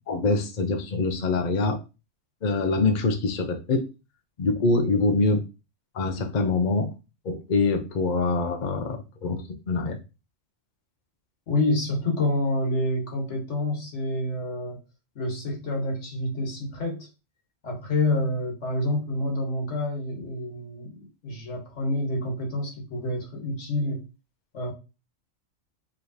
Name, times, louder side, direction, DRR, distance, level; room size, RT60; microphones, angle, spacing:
voice 1, 0.1-1.8 2.4-3.9 4.4-5.4 5.9-6.9 7.2-10.0, left 3 dB, 50° left, 6 dB, 0.6 m, -24 dB
voice 2, 11.5-14.8 15.1-17.1 17.6-24.0 24.5-24.7, left 1 dB, 65° left, 1 dB, 1.5 m, -28 dB
4.8 x 3.2 x 2.7 m, 0.29 s
omnidirectional pair, 1.3 m